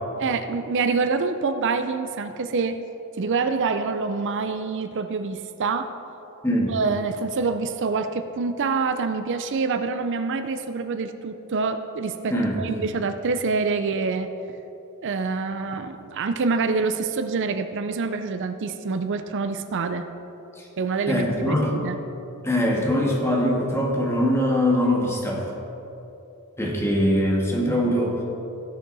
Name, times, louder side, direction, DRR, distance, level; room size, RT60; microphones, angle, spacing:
voice 1, 0.2-2.8 3.2-5.9 6.7-14.3 15.0-20.1 20.8-22.0, right 4 dB, 55° right, 9 dB, 0.5 m, -26 dB
voice 2, 21.1-21.7 22.4-25.4 26.6-28.2, equal, 10° left, -2 dB, 1.7 m, -22 dB
17.5 x 6.4 x 4.1 m, 2.9 s
head